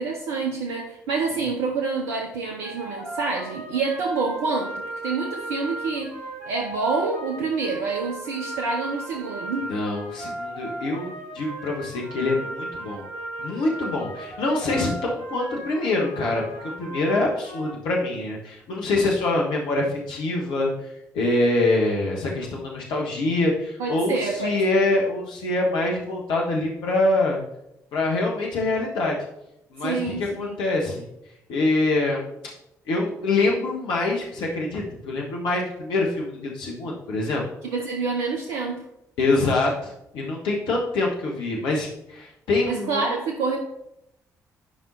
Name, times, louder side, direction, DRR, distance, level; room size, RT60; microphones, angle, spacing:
voice 1, 0.0-6.1 6.5-9.7 23.8-24.9 29.8-30.6 37.6-38.8 42.7-43.6, right 4 dB, 70° right, 0 dB, 0.8 m, -27 dB
sound 1, 2.6-17.7, right 1 dB, 85° right, 1.2 m, -36 dB
voice 2, 9.7-13.1 13.4-16.4 16.8-20.7 21.1-27.4 27.9-29.2 29.7-31.0 31.5-32.3 32.9-37.4 39.2-43.2, left 2 dB, 65° left, -2 dB, 1.2 m, -25 dB
10.0 x 5.5 x 2.7 m, 0.82 s
figure-of-eight pair, 40°, 9 cm